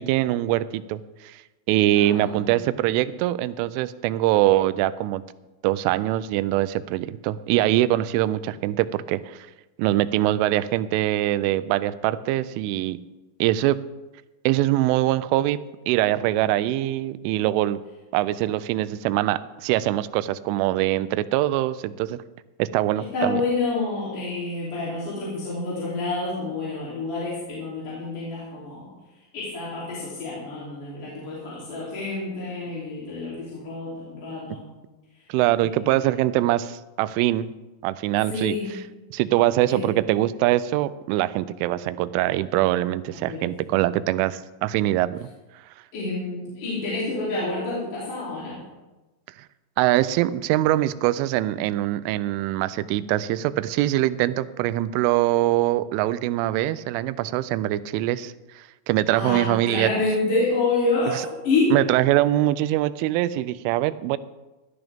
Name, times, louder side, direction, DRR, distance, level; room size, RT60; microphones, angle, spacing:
voice 1, 0.0-1.4 1.7-5.2 5.6-9.5 9.8-13.0 13.4-13.8 14.5-15.6 15.9-17.8 18.1-22.2 22.6-23.4 35.3-37.5 37.8-38.6 39.1-45.2 49.8-59.9 61.7-64.2, right 15 dB, 85° right, 15 dB, 3.0 m, -23 dB
voice 2, 1.9-2.5 23.0-28.9 29.3-34.7 35.6-36.2 38.3-38.7 39.7-39.9 43.2-43.5 45.9-48.6 59.1-61.8, left 3 dB, 45° left, -8 dB, 4.2 m, -28 dB
16.5 x 12.0 x 3.5 m, 1.1 s
omnidirectional pair, 5.6 m